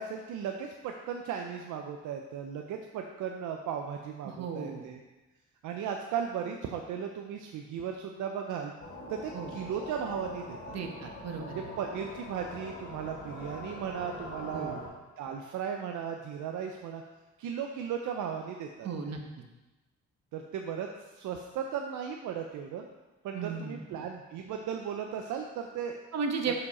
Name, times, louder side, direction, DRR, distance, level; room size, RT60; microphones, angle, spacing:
voice 1, 0.0-5.0 5.6-8.7 9.1-10.8 11.4-14.8 15.2-17.0 17.4-19.1 20.3-20.9 21.2-22.9 23.2-26.0 26.5-26.6, right 7 dB, 80° right, 3 dB, 0.6 m, -36 dB
voice 2, 4.2-4.9 9.3-9.5 10.7-11.7 14.5-14.8 18.8-19.2 23.3-23.8 26.1-26.5, right 5 dB, 60° right, 4 dB, 1.1 m, -35 dB
sound 1, 8.8-14.9, left 2 dB, 50° left, 1.8 m, -43 dB
6.9 x 5.2 x 4.1 m, 1.1 s
cardioid pair, 90°, 30 cm